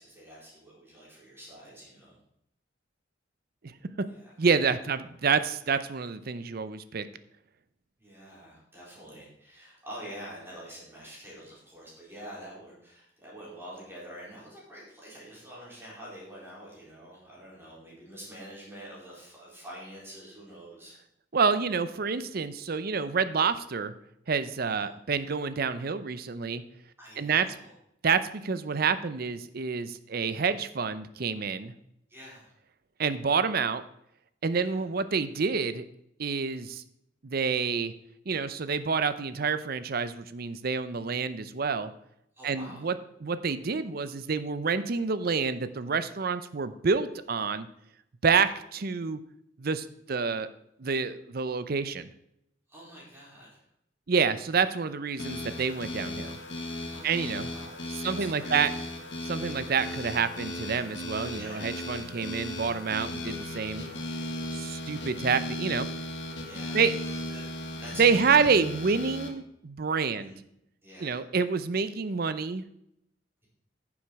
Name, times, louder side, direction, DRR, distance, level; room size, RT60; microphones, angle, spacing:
voice 1, 0.0-2.2 4.1-4.3 8.0-20.9 24.6-24.9 27.0-27.7 32.1-32.5 34.6-34.9 42.3-42.9 52.7-53.6 56.9-57.8 58.1-58.6 61.3-61.8 63.8-64.4 66.4-67.4 67.8-68.8 70.2-70.3 70.8-71.2, equal, 15° right, -6 dB, 4.3 m, -47 dB
voice 2, 4.4-7.1 21.3-23.9 24.3-26.6 27.2-27.5 28.0-31.7 33.0-33.8 34.4-35.8 36.2-36.8 37.2-37.9 38.3-41.9 42.4-43.0 43.2-47.7 48.2-49.2 49.6-50.5 50.8-52.1 54.1-56.4 57.0-57.5 58.0-58.7 59.2-63.8 64.5-65.9 66.7-67.0 68.0-70.3 71.0-72.6, right 5 dB, 55° right, 13 dB, 0.6 m, -28 dB
sound 1, 55.2-69.3, left 1 dB, 70° left, 1.4 m, -36 dB
9.7 x 7.2 x 4.7 m, 0.77 s
head